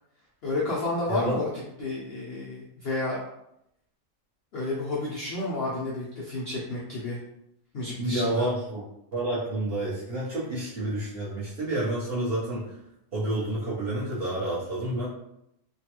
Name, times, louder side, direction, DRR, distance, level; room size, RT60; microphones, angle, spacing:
voice 1, 0.4-1.5 1.8-3.2 4.5-7.2 7.7-8.5, left 2 dB, 60° left, -6 dB, 0.6 m, -31 dB
voice 2, 8.0-8.8 9.1-12.7 13.1-15.1, right 1 dB, 45° right, -8 dB, 1.0 m, -29 dB
3.1 x 2.2 x 2.9 m, 0.80 s
omnidirectional pair, 1.7 m